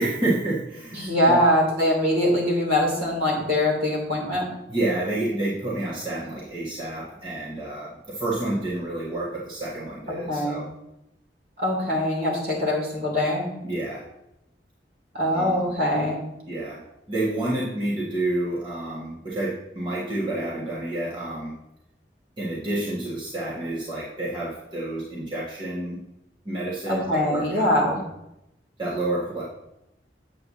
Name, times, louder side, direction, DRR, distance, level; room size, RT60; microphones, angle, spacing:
voice 1, 0.0-1.4 4.7-10.7 13.6-14.0 15.3-15.5 16.5-21.5 22.4-26.0 26.4-28.0 28.8-29.4, right 2 dB, 25° right, -8 dB, 1.6 m, -29 dB
voice 2, 1.0-4.5 10.3-10.6 11.6-13.5 15.1-16.2 26.9-28.0, left 1 dB, 55° right, -2 dB, 2.7 m, -23 dB
7.8 x 7.8 x 2.7 m, 0.85 s
head